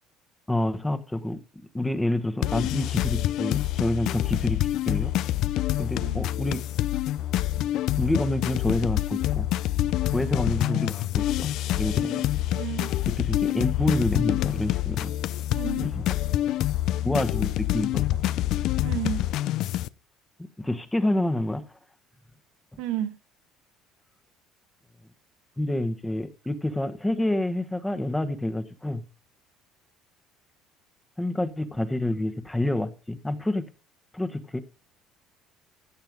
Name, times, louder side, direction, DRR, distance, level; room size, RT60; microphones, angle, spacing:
voice 1, 0.5-1.4 1.7-5.1 5.8-6.6 8.0-9.5 10.1-12.2 13.1-15.1 15.8-16.0 17.0-18.1 20.6-21.6 25.6-29.0 31.2-33.6 34.1-34.6, left 1 dB, 10° left, 1.2 m, -28 dB
sound 1, 2.4-19.9, left 14 dB, 65° left, 0.5 m, -26 dB
voice 2, 12.5-12.9 15.5-15.9 18.8-19.2 22.8-23.1, right 11 dB, 80° right, 1.4 m, -32 dB
15.5 x 6.8 x 5.1 m
cardioid pair, 110°, 0 cm